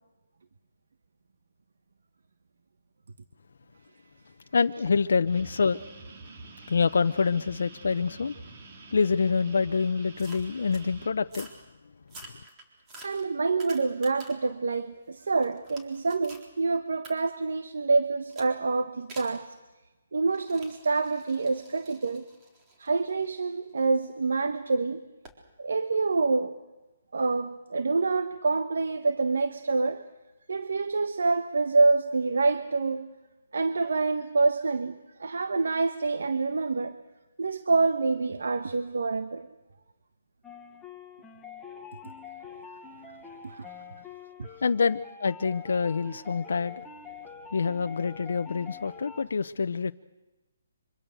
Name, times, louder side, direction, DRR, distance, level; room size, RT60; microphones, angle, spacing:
voice 1, 4.5-5.8 6.7-8.3 8.9-11.5 44.6-46.8 47.5-49.9, left 5 dB, 70° left, 8 dB, 0.7 m, -26 dB
sound 1, 5.3-11.1, right 3 dB, 45° right, 4.2 m, -46 dB
sound 2, 10.2-10.9 11.3-11.6 12.0-14.5 14.9-16.5 17.0-17.1 18.3-18.5 19.1-19.4 20.3-24.2 25.2-25.4, right 2 dB, 20° right, 4.0 m, -49 dB
voice 2, 13.0-19.5 20.1-22.3 22.8-25.0 25.6-26.6 27.1-30.1 30.5-33.1 33.5-37.0 37.4-39.5 43.4-43.7 44.4-44.5, right 3 dB, 80° right, 10 dB, 1.2 m, -27 dB
sound 3, 40.4-49.2, left 6 dB, 5° left, 1.3 m, -45 dB
26.0 x 25.0 x 6.5 m, 1.1 s
hypercardioid pair, 165°, 0 cm